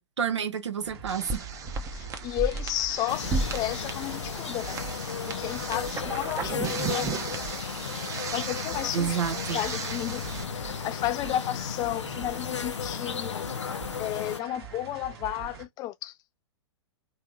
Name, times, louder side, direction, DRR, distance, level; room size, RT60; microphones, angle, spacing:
voice 1, 0.0-1.4 8.9-9.6, right 8 dB, 80° right, 0.7 m, -29 dB
sound 1, 0.8-15.7, right 7 dB, 60° right, 1.3 m, -44 dB
sound 2, 1.1-10.4, right 4 dB, 20° right, 0.7 m, -35 dB
voice 2, 2.0-4.8 5.2-7.2 8.3-9.2 9.5-13.7 14.0-16.2, left 14 dB, 25° left, 0.3 m, -33 dB
sound 3, 3.1-14.4, left 7 dB, 85° left, 0.5 m, -35 dB
3.1 x 2.9 x 2.6 m
hypercardioid pair, 110°, 15 cm